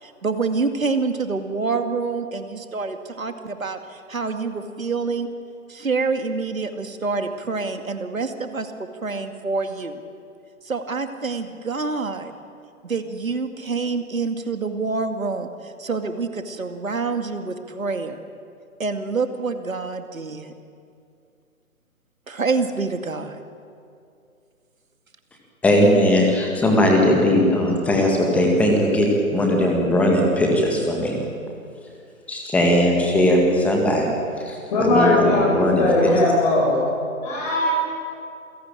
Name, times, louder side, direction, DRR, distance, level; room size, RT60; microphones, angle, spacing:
voice 1, 0.0-5.3 5.7-10.0 10.6-12.3 12.8-18.2 18.8-20.5 22.3-23.4, right 4 dB, 65° right, 7 dB, 2.3 m, -27 dB
voice 2, 25.6-31.2 32.3-34.2 34.4-36.3, left 1 dB, 5° left, 1 dB, 1.9 m, -19 dB
voice 3, 34.7-36.8 37.2-37.7, left 2 dB, 30° left, -4 dB, 7.3 m, -19 dB
28.0 x 17.0 x 9.0 m, 2.5 s
figure-of-eight pair, 145°, 43 cm